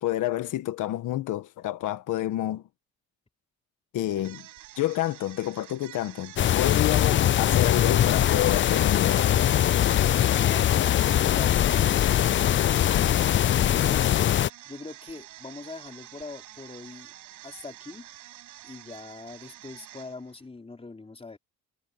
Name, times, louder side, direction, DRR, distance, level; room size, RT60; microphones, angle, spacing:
voice 1, 0.0-2.6 3.9-4.5 4.8-9.3, left 14 dB, 85° left, 1.7 m, -29 dB
sound 1, 4.1-20.4, right 15 dB, 90° right, 7.1 m, -48 dB
sound 2, 6.4-14.5, left 11 dB, 40° left, 0.4 m, -22 dB
voice 2, 13.5-14.2 14.7-17.1 17.4-18.1 18.6-21.4, left 3 dB, 20° left, 3.6 m, -42 dB
cardioid pair, 90°, 30 cm